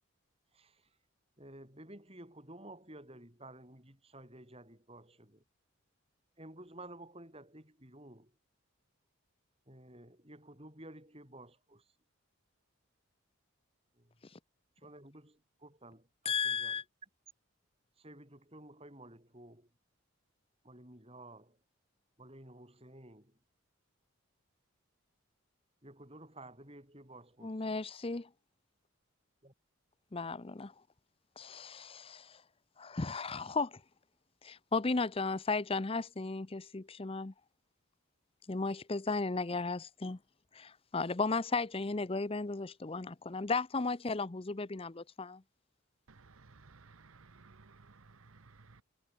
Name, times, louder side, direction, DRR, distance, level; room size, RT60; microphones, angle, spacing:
voice 1, 1.4-5.4 6.4-8.3 9.7-11.8 14.0-14.1 14.8-16.7 18.0-19.7 20.6-21.6 22.2-23.3 25.8-27.6 29.4-29.5, right 1 dB, 25° right, 5.6 m, -53 dB
voice 2, 16.2-16.8 27.4-28.3 30.1-30.7 31.4-32.4 32.8-33.8 34.4-37.3 38.5-40.2 40.5-45.4, left 3 dB, 25° left, 0.6 m, -35 dB
voice 3, 46.1-46.5 47.3-48.8, right 3 dB, 75° right, 1.1 m, -58 dB
head